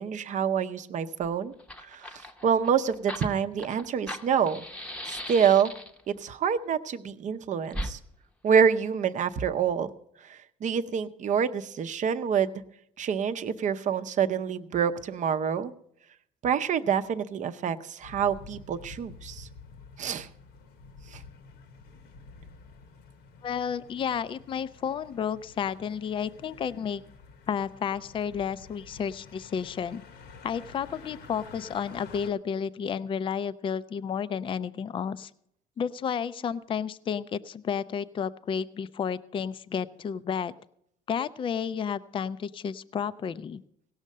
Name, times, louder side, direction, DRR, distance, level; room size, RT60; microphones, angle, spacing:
voice 1, 0.0-1.5 1.8-4.7 5.1-5.7 6.1-8.0 8.4-9.9 10.2-12.5 13.0-15.7 16.4-19.5 20.0-20.3 21.1-21.2, right 7 dB, 45° right, 11 dB, 0.7 m, -27 dB
Fire, 1.2-1.3 1.5-6.1 7.7-7.9, equal, 5° left, 0.8 m, -38 dB
sound 1, 18.0-32.3, left 4 dB, 75° left, 1.1 m, -50 dB
voice 2, 23.4-27.0 27.5-30.0 30.4-35.3 35.8-40.5 41.1-43.6, left 7 dB, 30° left, 14 dB, 0.4 m, -31 dB
17.5 x 6.4 x 6.5 m, 0.72 s
cardioid pair, 110°, 17 cm